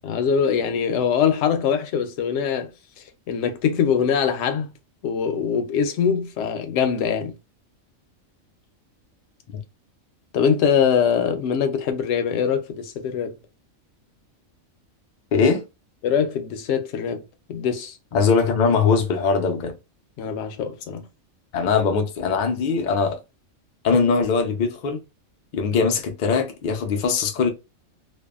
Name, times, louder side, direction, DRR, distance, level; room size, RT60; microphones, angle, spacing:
voice 1, 0.0-2.7 3.0-4.7 5.0-7.3 10.3-13.4 16.0-17.2 17.5-17.9 20.2-21.1, left 7 dB, 65° left, 0.8 m, -23 dB
voice 2, 15.3-15.6 18.1-19.7 21.5-23.2 23.8-25.0 25.5-27.5, left 5 dB, 85° left, 0.4 m, -21 dB
2.6 x 2.3 x 2.3 m
omnidirectional pair, 1.4 m